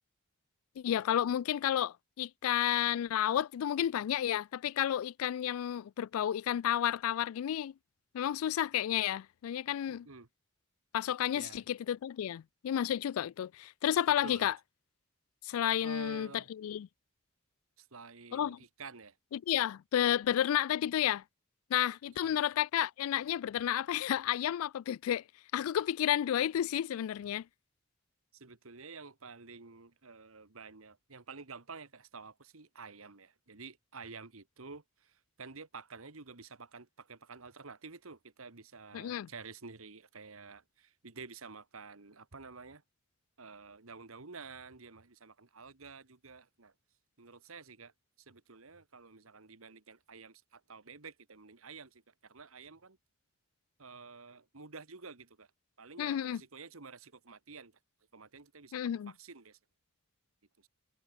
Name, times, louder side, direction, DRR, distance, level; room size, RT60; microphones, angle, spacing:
voice 1, 0.8-7.7 8.1-10.1 10.9-14.5 15.4-16.9 18.3-18.6 19.3-21.2 21.7-25.2 25.5-27.4 38.9-39.3 56.0-56.4 58.7-59.1, left 10 dB, 85° left, 0.3 m, -31 dB
voice 2, 9.9-10.3 11.3-11.6 14.1-14.5 15.8-16.5 17.8-19.2 22.2-22.4 28.3-42.8 43.4-46.7 47.2-47.9 48.3-53.0 53.8-55.5 55.8-57.7 58.1-58.8 59.1-59.6, right 4 dB, 80° right, 1.7 m, -50 dB
head